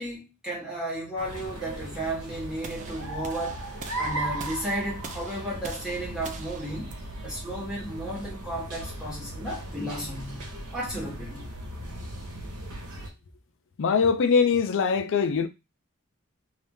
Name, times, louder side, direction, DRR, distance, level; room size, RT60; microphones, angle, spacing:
voice 1, 0.0-3.6 4.0-6.9 7.2-11.5, right 1 dB, 5° right, 1.3 m, -34 dB
sound 1, 1.2-13.1, right 1 dB, 90° right, 1.2 m, -37 dB
sound 2, 2.6-8.7, right 4 dB, 35° right, 0.4 m, -44 dB
voice 2, 13.8-15.5, left 5 dB, 60° left, 0.4 m, -22 dB
2.8 x 2.7 x 3.5 m
head